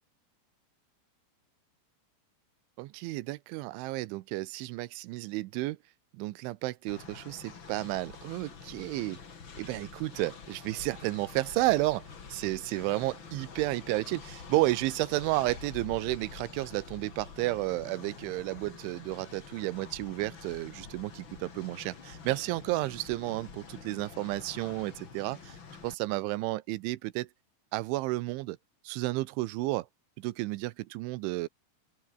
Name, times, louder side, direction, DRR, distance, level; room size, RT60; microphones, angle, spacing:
voice 1, 2.8-5.8 6.1-9.2 9.6-25.6 25.8-27.3 27.7-28.6 28.8-29.9 30.2-31.5, right 19 dB, 85° right, 3.2 m, -32 dB
Train, 6.9-25.9, left 5 dB, 35° left, 2.4 m, -47 dB
open air
omnidirectional pair, 5.4 m